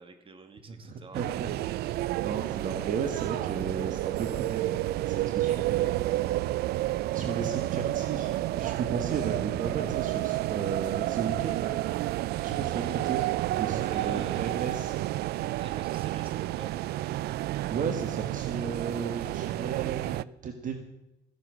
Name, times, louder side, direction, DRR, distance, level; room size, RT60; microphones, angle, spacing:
voice 1, 0.0-1.2 13.7-14.6 15.6-16.8, right 4 dB, 30° right, 6 dB, 2.3 m, -47 dB
voice 2, 0.7-1.5 1.8-8.3 8.6-11.8 12.4-13.3 13.6-14.9 17.2-20.8, right 6 dB, 50° right, 6 dB, 1.4 m, -35 dB
sound 1, 1.1-20.2, right 16 dB, 70° right, 0.4 m, -30 dB
15.5 x 11.0 x 6.2 m, 0.97 s
cardioid pair, 110°, 17 cm